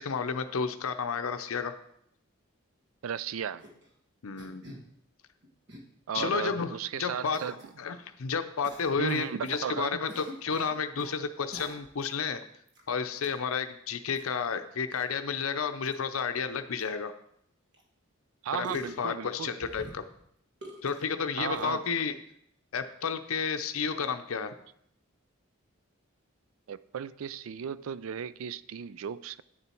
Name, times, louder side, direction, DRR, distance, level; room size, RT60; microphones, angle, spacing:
voice 1, 0.0-1.8 4.2-4.6 6.1-7.4 7.8-12.4 12.9-17.1 18.6-20.0 20.8-22.2 22.7-24.5, left 6 dB, 85° left, 0.6 m, -31 dB
voice 2, 3.0-3.6 6.1-7.6 9.0-10.0 18.4-19.5 21.4-21.8 26.7-29.4, right 8 dB, 80° right, 0.4 m, -35 dB
sound 1, 3.6-3.9 4.4-4.9 5.4-5.8 6.1-6.6 7.3-7.7 8.6-9.6 10.1-11.2 11.5-12.1 12.7-12.8 13.2-13.3 14.2-14.3 14.9-15.0 15.3-15.4 15.9-16.0 16.5-16.6 16.8-16.9 17.7-17.8 18.6-19.1 19.6-20.2 20.6-21.1 21.5-21.6, equal, 55° right, 1.6 m, -46 dB
9.2 x 7.0 x 4.4 m
head